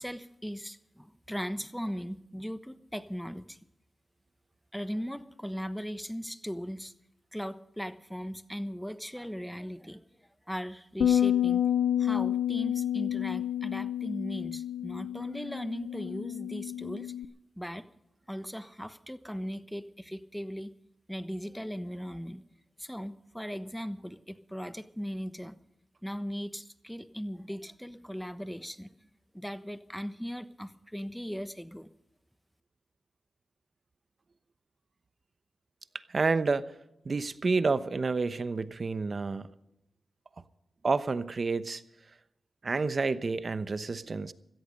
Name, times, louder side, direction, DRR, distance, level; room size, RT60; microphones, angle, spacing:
voice 1, 0.0-3.6 4.7-6.9 7.3-10.0 10.5-11.7 12.0-17.1 17.6-17.9 18.3-20.7 21.1-22.4 22.8-25.6 26.0-28.9 29.3-31.9, equal, ahead, 12 dB, 1.1 m, -38 dB
Bass guitar, 11.0-17.3, left 10 dB, 85° left, 0.5 m, -29 dB
voice 2, 36.1-36.6 37.0-39.5 40.8-41.8 42.6-44.3, right 4 dB, 50° right, 14 dB, 0.9 m, -29 dB
17.0 x 13.5 x 5.3 m, 0.84 s
cardioid pair, 60°, 0 cm